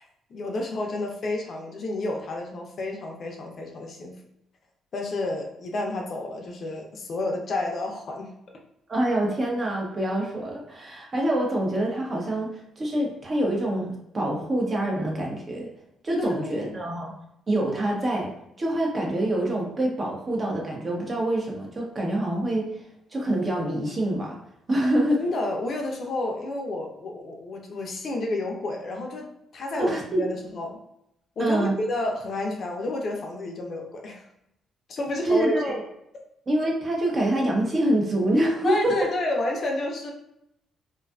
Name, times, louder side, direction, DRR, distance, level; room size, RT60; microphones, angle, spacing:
voice 1, 0.3-4.1 4.9-8.3 16.2-16.7 25.1-30.8 31.4-34.2 34.9-35.5 38.6-40.1, left 2 dB, 55° left, 1 dB, 0.5 m, -30 dB
voice 2, 8.9-12.5 12.8-15.7 16.0-17.1 17.5-18.3 18.6-22.7 23.1-24.4 24.7-25.2 29.7-30.2 31.4-31.7 35.2-35.8 36.5-39.1, right 1 dB, 35° right, -1 dB, 0.7 m, -25 dB
2.6 x 2.3 x 2.3 m, 0.80 s
cardioid pair, 90°, 0 cm